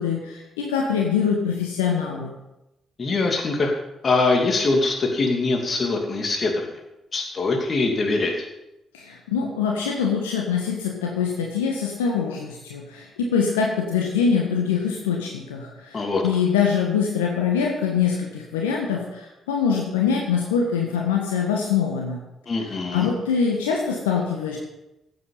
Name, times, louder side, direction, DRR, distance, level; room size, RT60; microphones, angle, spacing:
voice 1, 0.0-2.3 8.9-22.2 22.9-24.6, left 6 dB, 80° left, -1 dB, 1.5 m, -24 dB
voice 2, 3.0-3.7 4.0-6.7 7.1-8.3 15.9-16.2 22.5-23.1, left 3 dB, 40° left, 2 dB, 2.7 m, -23 dB
15.0 x 7.8 x 5.5 m, 0.93 s
figure-of-eight pair, 40°, 0 cm